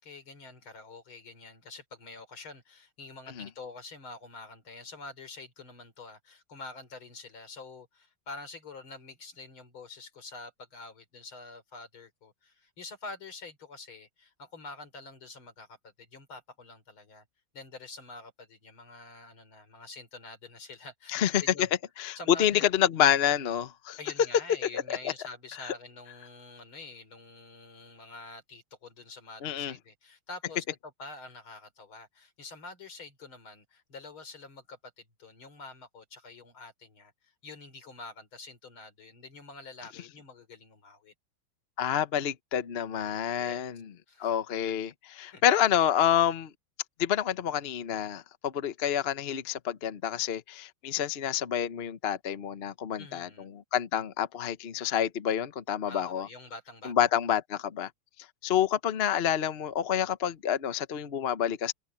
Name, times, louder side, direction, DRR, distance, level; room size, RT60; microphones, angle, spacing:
voice 1, 0.0-17.2 17.5-21.7 22.2-22.7 24.0-41.1 43.4-43.6 44.1-44.4 45.3-45.4 53.0-53.5 55.9-57.1, left 3 dB, 85° left, 4.8 m, -47 dB
voice 2, 21.1-21.7 22.0-24.0 24.7-25.1 25.6-25.7 29.4-29.7 41.8-43.8 44.2-46.5 47.0-56.3 56.8-57.9 58.4-61.7, left 10 dB, 45° left, 0.8 m, -28 dB
omnidirectional pair, 2.2 m